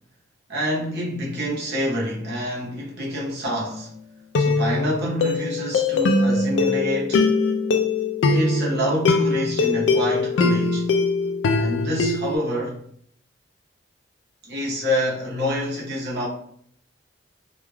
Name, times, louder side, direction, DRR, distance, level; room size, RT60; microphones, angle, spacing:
voice 1, 0.5-3.9 4.4-7.3 8.3-10.9 11.5-12.9 14.4-16.3, equal, 60° right, 0.9 m, -27 dB
sound 1, 3.4-3.7 4.3-12.4, left 3 dB, 80° left, 0.4 m, -22 dB
3.2 x 2.3 x 2.2 m
head